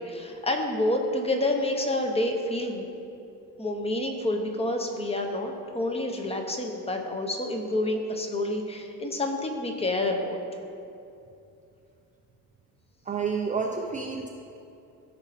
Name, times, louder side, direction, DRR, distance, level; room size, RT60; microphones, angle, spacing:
voice 1, 0.0-2.9 3.6-10.4, left 1 dB, 15° left, 3 dB, 0.7 m, -28 dB
voice 2, 13.1-14.3, right 5 dB, 20° right, 1 dB, 0.4 m, -29 dB
15.0 x 5.1 x 4.1 m, 2.7 s
cardioid pair, 150°, 37 cm